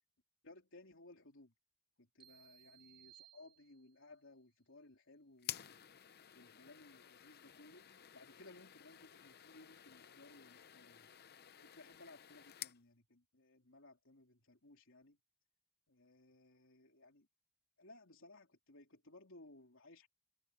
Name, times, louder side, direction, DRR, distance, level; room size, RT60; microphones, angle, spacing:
voice 1, 0.4-1.5 2.0-5.8 6.3-7.9 8.1-11.1 11.6-15.2 15.9-17.3 17.8-20.1, left 2 dB, 65° left, 3.6 m, -60 dB
sound 1, 2.2-4.1, right 12 dB, 25° right, 4.6 m, -64 dB
sound 2, 5.4-12.8, left 11 dB, 50° left, 0.7 m, -52 dB
head